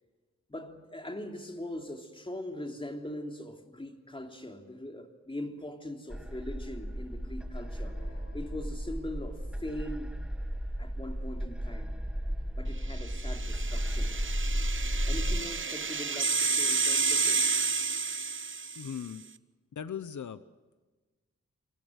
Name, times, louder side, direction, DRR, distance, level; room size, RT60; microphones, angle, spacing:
voice 1, 0.5-8.0 8.3-10.2 10.8-12.0 12.6-14.2 15.1-17.5, left 1 dB, 20° left, 3.3 m, -41 dB
sound 1, 6.1-15.4, equal, 5° right, 1.5 m, -34 dB
sound 2, 7.7-9.8, left 3 dB, 55° left, 6.1 m, -59 dB
sound 3, 13.1-19.0, right 4 dB, 45° right, 1.0 m, -30 dB
voice 2, 18.7-19.2 19.7-20.4, left 8 dB, 80° left, 0.9 m, -38 dB
28.0 x 25.0 x 6.5 m
wide cardioid pair, 85°, 29 cm